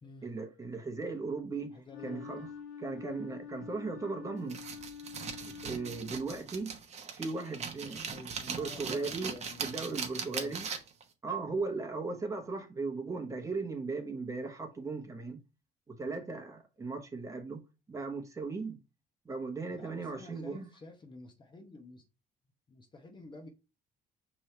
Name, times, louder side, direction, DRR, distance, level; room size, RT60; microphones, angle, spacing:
voice 1, 0.2-1.8 2.0-2.5 2.8-4.6 5.5-6.7 7.1-8.0 8.5-9.4 9.6-10.7 11.2-15.4 15.9-17.6 17.9-18.8 19.2-20.7, right 3 dB, 20° right, 1.1 m, -37 dB
voice 2, 1.7-2.5 8.0-10.6 19.7-22.0 22.7-23.5, left 2 dB, 30° left, 0.8 m, -51 dB
Wind instrument woodwind instrument, 1.9-6.4, left 7 dB, 80° left, 1.3 m, -47 dB
sound 1, 4.5-11.0, right 6 dB, 40° right, 0.9 m, -40 dB
5.4 x 3.1 x 3.2 m
cardioid pair, 110°, 17 cm